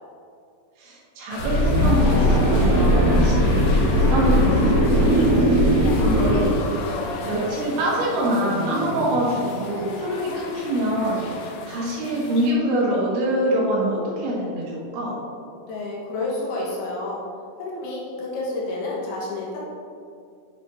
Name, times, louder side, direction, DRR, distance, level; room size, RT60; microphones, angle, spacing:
voice 1, 0.8-5.3 5.6-5.7 6.0-6.8 7.2-11.2 11.7-15.1, right 1 dB, 85° right, -6 dB, 4.1 m, -25 dB
sound 1, 1.3-12.5, left 3 dB, 85° left, 2.0 m, -33 dB
sound 2, 1.4-6.4, equal, 65° right, 2.4 m, -18 dB
voice 2, 15.7-17.2 17.6-19.7, left 2 dB, 70° left, -5 dB, 3.0 m, -29 dB
8.4 x 7.5 x 2.7 m, 2.4 s
omnidirectional pair, 5.2 m